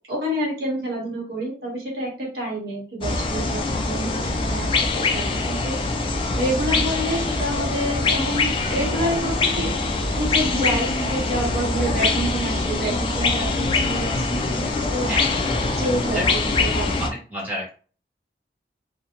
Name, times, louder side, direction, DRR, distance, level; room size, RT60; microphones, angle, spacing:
voice 1, 0.1-5.7 6.4-9.7 10.2-14.6 14.9-15.1 15.8-17.1, right 1 dB, 60° right, -2 dB, 0.9 m, -28 dB
sound 1, 3.0-17.1, left 3 dB, 30° left, 0.3 m, -23 dB
voice 2, 15.0-15.4 16.1-16.3 16.5-17.8, equal, 10° right, -4 dB, 1.1 m, -31 dB
2.5 x 2.1 x 2.8 m, 0.38 s
head